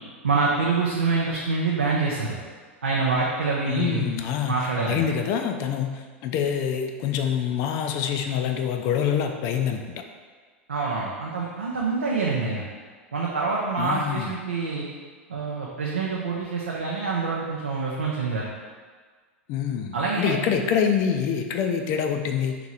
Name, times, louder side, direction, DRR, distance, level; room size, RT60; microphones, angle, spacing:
voice 1, 0.2-2.4 2.8-4.0 4.5-5.0 10.7-12.7 13.1-14.9 15.3-18.5 19.9-20.3, right 4 dB, 90° right, -4 dB, 0.5 m, -26 dB
voice 2, 3.7-9.8 13.8-14.4 19.5-22.6, left 8 dB, 50° left, 5 dB, 0.4 m, -26 dB
3.0 x 2.9 x 3.7 m, 1.5 s
hypercardioid pair, 95°, 7 cm